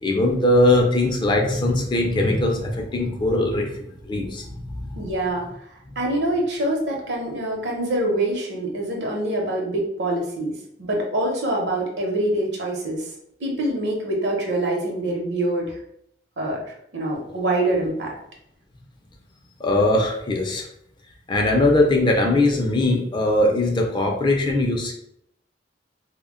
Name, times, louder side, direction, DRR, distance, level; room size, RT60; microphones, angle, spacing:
voice 1, 0.0-4.5 4.9-5.0 19.6-20.6 21.3-24.9, left 1 dB, 25° left, 1 dB, 0.4 m, -20 dB
voice 2, 5.0-5.4 6.0-13.1 13.4-15.8 16.4-18.1, right 1 dB, 70° right, 0 dB, 0.7 m, -25 dB
2.1 x 2.0 x 3.6 m, 0.74 s
head